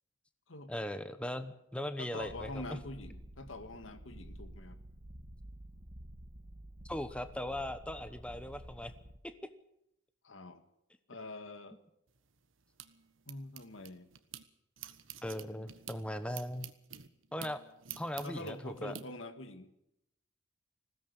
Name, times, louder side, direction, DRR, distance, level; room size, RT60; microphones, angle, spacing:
voice 1, 0.7-2.8 6.8-8.9 9.2-9.3 15.2-16.7 17.3-17.6 18.0-18.9, left 1 dB, 5° left, 10 dB, 1.0 m, -39 dB
voice 2, 2.0-4.8 10.2-10.6 11.1-11.8 13.3-14.1 15.4-15.7 18.2-19.7, left 2 dB, 75° left, 10 dB, 1.9 m, -45 dB
Purr, 2.2-9.2, right 1 dB, 45° right, 1.6 m, -50 dB
sound 1, 12.1-14.4 14.8-19.0, right 9 dB, 80° right, 1.5 m, -49 dB
20.5 x 16.5 x 8.2 m, 0.81 s
head